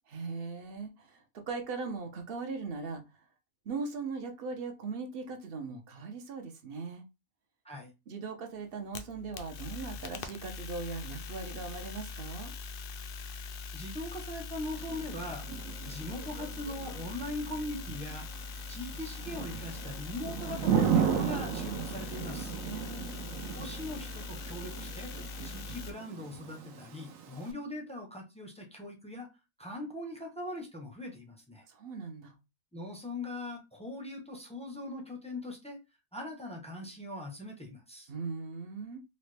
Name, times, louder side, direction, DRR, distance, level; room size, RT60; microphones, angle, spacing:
voice 1, 0.1-3.0 3.7-7.0 8.1-12.5 22.6-23.2 31.7-32.4 38.1-39.0, right 4 dB, 55° right, 0.7 m, -39 dB
sound 1, 8.7-25.9, left 5 dB, 70° left, 0.5 m, -42 dB
voice 2, 13.7-15.5 15.8-18.3 18.7-22.6 23.5-25.1 25.4-29.3 29.6-31.6 32.7-35.8 36.1-38.1, left 1 dB, 10° left, 0.4 m, -41 dB
Thunder / Rain, 14.8-27.5, right 7 dB, 75° right, 1.0 m, -35 dB
3.9 x 2.1 x 3.2 m
omnidirectional pair, 1.4 m